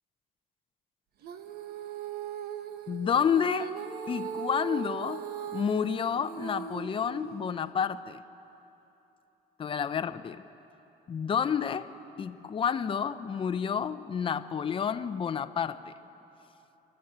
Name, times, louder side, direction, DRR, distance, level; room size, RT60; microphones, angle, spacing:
Female singing, 1.2-7.7, right 8 dB, 70° right, 1.2 m, -39 dB
voice 1, 2.9-3.7 4.1-5.2 5.5-8.2 9.6-10.4 11.1-11.9 12.2-15.9, left 7 dB, 30° left, 11 dB, 0.6 m, -30 dB
27.5 x 12.0 x 7.9 m, 3.0 s
cardioid pair, 110°, 17 cm